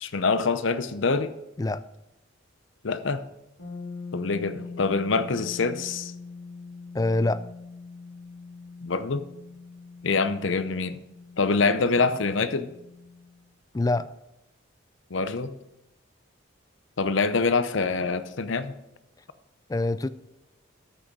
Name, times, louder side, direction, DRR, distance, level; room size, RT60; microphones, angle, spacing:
voice 1, 0.0-1.3 2.8-3.2 4.1-6.1 8.8-9.3 10.0-11.0 11.4-12.7 15.1-15.5 17.0-18.7, left 4 dB, 70° left, 0.7 m, -25 dB
sound 1, 3.6-13.4, left 4 dB, 85° left, 3.0 m, -43 dB
voice 2, 6.9-7.4 13.7-14.1 19.7-20.1, left 2 dB, 15° left, 0.3 m, -24 dB
13.5 x 6.3 x 4.7 m
head